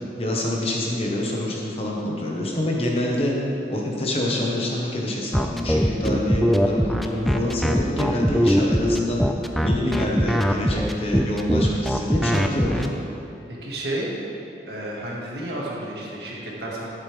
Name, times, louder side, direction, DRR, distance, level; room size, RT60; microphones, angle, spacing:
voice 1, 0.2-3.3 3.7-9.2 9.5-13.0, left 1 dB, 35° left, -2 dB, 1.2 m, -26 dB
sound 1, 5.3-12.9, equal, ahead, 0.3 m, -21 dB
voice 2, 13.6-14.1 14.7-16.9, right 1 dB, 70° right, -4 dB, 1.9 m, -31 dB
11.5 x 8.4 x 3.4 m, 2.9 s
head